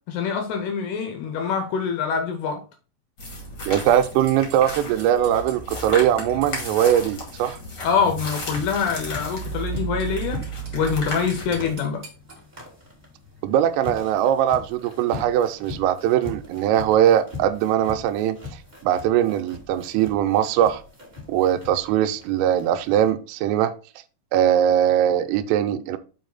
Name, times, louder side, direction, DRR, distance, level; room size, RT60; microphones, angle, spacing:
voice 1, 0.1-2.6 7.8-12.0, left 6 dB, 80° left, 2.4 m, -25 dB
sound 1, 3.2-11.7, right 1 dB, 45° left, 1.3 m, -33 dB
voice 2, 3.7-7.6 13.4-20.8 21.3-23.7 24.3-26.0, right 10 dB, 90° right, 3.2 m, -21 dB
sound 2, 3.8-7.0 9.4-9.5 9.8-12.4, right 4 dB, 35° right, 2.4 m, -43 dB
sound 3, 8.0-23.1, left 3 dB, 20° right, 1.2 m, -41 dB
7.3 x 4.7 x 3.8 m
omnidirectional pair, 5.7 m